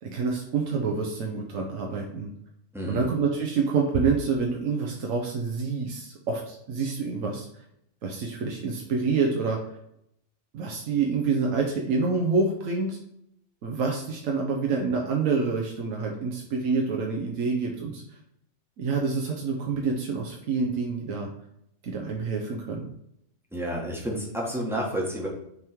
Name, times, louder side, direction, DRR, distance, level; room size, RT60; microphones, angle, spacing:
voice 1, 0.0-2.3 2.9-7.5 8.0-9.6 10.5-13.0 13.6-18.0 18.8-21.3 21.8-22.9, right 4 dB, 80° right, 0 dB, 1.2 m, -27 dB
voice 2, 2.7-3.1 23.5-25.3, equal, ahead, -3 dB, 1.5 m, -30 dB
6.3 x 3.6 x 4.5 m, 0.77 s
omnidirectional pair, 1.4 m